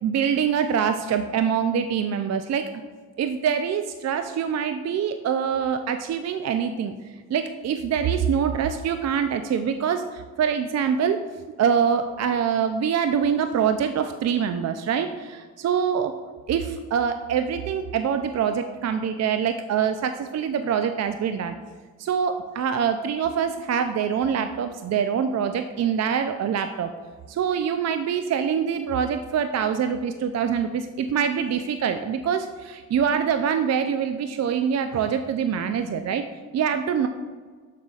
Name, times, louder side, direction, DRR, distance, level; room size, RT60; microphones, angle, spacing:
voice 1, 0.0-2.7 3.2-6.9 7.3-16.1 16.5-21.5 22.0-26.9 27.3-36.2 36.5-37.1, right 7 dB, 45° right, 8 dB, 0.4 m, -24 dB
7.2 x 6.6 x 2.4 m, 1.6 s
supercardioid pair, 55°, 39 cm